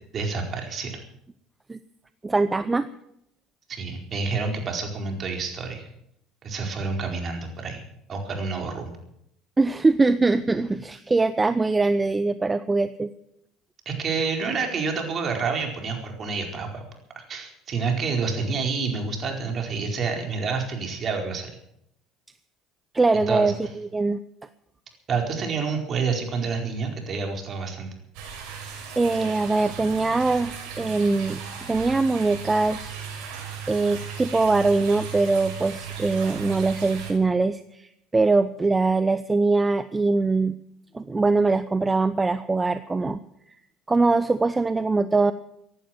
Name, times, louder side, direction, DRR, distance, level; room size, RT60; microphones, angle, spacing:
voice 1, 0.1-1.0 3.7-5.9 6.4-7.8 8.1-8.9 13.8-16.8 17.2-21.5 23.1-23.5 25.1-27.9, right 4 dB, 40° right, 2 dB, 4.5 m, -28 dB
voice 2, 2.2-2.9 9.6-13.1 22.9-24.2 29.0-31.4 31.7-33.0 33.7-40.6 40.9-43.2 43.9-45.3, right 3 dB, 20° right, 12 dB, 0.7 m, -22 dB
sound 1, 28.1-37.1, right 7 dB, 75° right, 5.8 m, -37 dB
15.5 x 11.0 x 7.8 m, 0.77 s
supercardioid pair, 90°, 0 cm